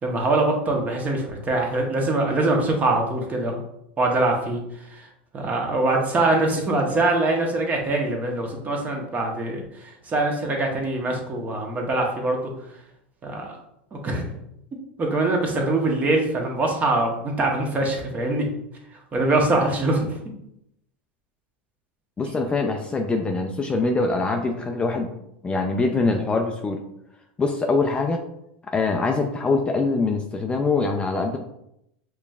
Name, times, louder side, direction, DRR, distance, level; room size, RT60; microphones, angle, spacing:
voice 1, 0.0-3.6 4.0-4.6 4.9-5.0 5.3-12.5 13.2-13.6 13.9-14.4 15.0-18.5 19.1-20.1 22.2-22.3, right 2 dB, 25° right, 1 dB, 1.0 m, -23 dB
voice 2, 22.2-25.1 25.4-26.8 27.4-28.2 28.7-31.4, left 3 dB, 20° left, 3 dB, 0.4 m, -23 dB
4.9 x 3.1 x 2.3 m, 0.79 s
hypercardioid pair, 100°, 6 cm